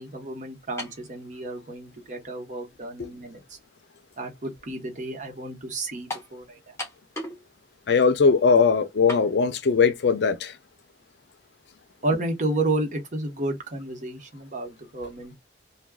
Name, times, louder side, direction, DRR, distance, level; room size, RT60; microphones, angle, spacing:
voice 1, 0.0-3.6 4.2-6.7 12.0-15.4, right 2 dB, 45° right, 1.0 m, -31 dB
sound 1, 0.8-1.1 2.0-2.1 6.1-6.3 6.8-7.4 7.7-7.8 9.1-9.3, left 1 dB, 15° left, 1.1 m, -34 dB
voice 2, 7.9-10.5, left 5 dB, 65° left, 0.4 m, -20 dB
3.5 x 2.2 x 2.2 m
head